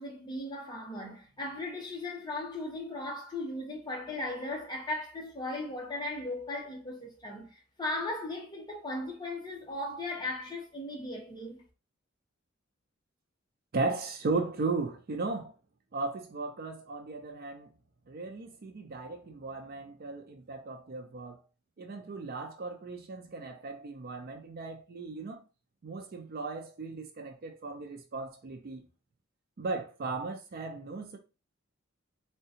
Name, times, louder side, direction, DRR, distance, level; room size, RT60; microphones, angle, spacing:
voice 1, 0.0-11.6, left 2 dB, 20° left, 0.7 m, -37 dB
voice 2, 13.7-15.5 15.9-17.7 18.1-21.4 21.8-25.4 25.8-28.9 29.6-31.2, right 3 dB, 45° right, 0.4 m, -36 dB
3.6 x 2.2 x 2.6 m
head